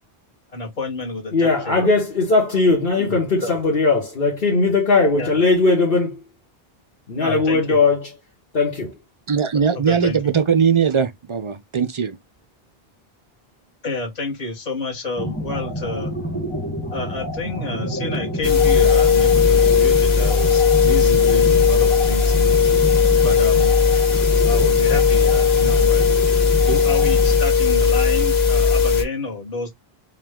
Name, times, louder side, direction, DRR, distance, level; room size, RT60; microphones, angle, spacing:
voice 1, 0.5-1.9 3.1-3.6 5.1-5.3 7.2-7.8 9.7-10.3 13.8-16.1 16.9-22.6 23.2-23.8 24.1-26.0 26.7-29.7, left 2 dB, 40° left, 1.4 m, -29 dB
voice 2, 1.3-6.2 7.1-8.1 8.5-8.9, left 3 dB, 65° left, 1.4 m, -18 dB
voice 3, 9.3-12.2, right 6 dB, 50° right, 0.4 m, -20 dB
sound 1, 15.2-27.4, equal, 10° left, 1.3 m, -29 dB
sound 2, 18.4-29.0, left 6 dB, 80° left, 1.4 m, -16 dB
4.7 x 2.3 x 3.6 m
omnidirectional pair, 1.0 m